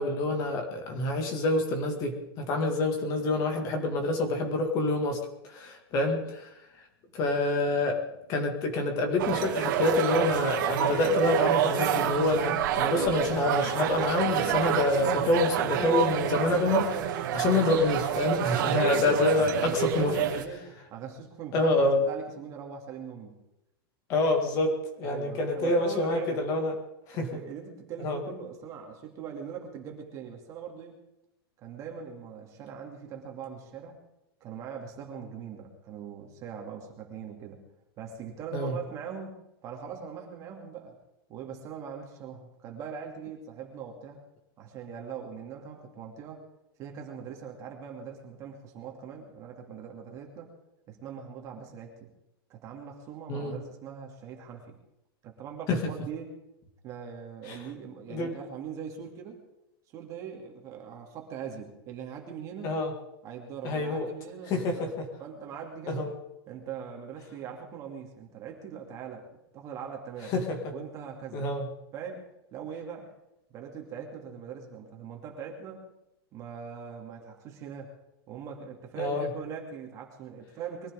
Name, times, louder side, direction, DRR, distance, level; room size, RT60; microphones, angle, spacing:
voice 1, 0.0-6.5 7.1-8.0 8.3-20.2 21.5-22.0 24.1-26.8 27.1-27.4 28.0-28.2 38.5-38.8 53.3-53.6 55.7-55.9 57.4-57.6 58.1-58.3 62.6-62.9 63.6-64.1 64.5-65.1 65.9-66.1 70.3-70.7 71.3-71.7 79.0-79.3, left 2 dB, 25° left, 3 dB, 2.2 m, -27 dB
sound 1, 9.2-20.4, right 10 dB, 50° right, 2.1 m, -28 dB
voice 2, 18.4-18.9 19.4-23.4 25.0-26.4 27.1-31.0 31.6-34.0 34.4-37.7 38.0-41.0 41.3-44.2 44.6-46.4 46.8-50.5 50.9-52.1 52.5-54.8 55.2-56.3 56.8-59.4 59.9-62.8 63.2-66.0 66.5-70.4 70.7-71.5 71.9-72.3 72.5-73.1 73.5-75.9 76.3-77.9 78.3-80.9, right 7 dB, 25° right, 2 dB, 2.7 m, -41 dB
23.0 x 15.0 x 3.8 m, 0.88 s
supercardioid pair, 165°, 13 cm